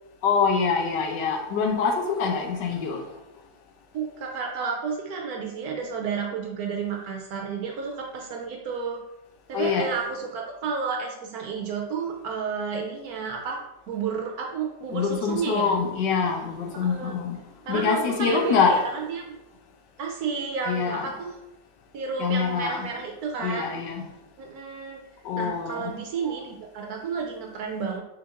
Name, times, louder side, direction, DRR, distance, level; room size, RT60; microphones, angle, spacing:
voice 1, 0.2-3.0 9.5-9.9 14.9-17.4 17.7-18.8 20.6-21.1 22.2-22.9 23.4-24.0 25.2-25.9, left 5 dB, 80° left, 1.2 m, -25 dB
voice 2, 3.9-9.0 9.5-15.7 16.8-17.1 17.7-19.4 20.0-21.3 21.9-23.8 24.4-25.0 25.4-28.0, right 5 dB, 70° right, 0.9 m, -31 dB
4.5 x 3.8 x 2.5 m
omnidirectional pair, 1.9 m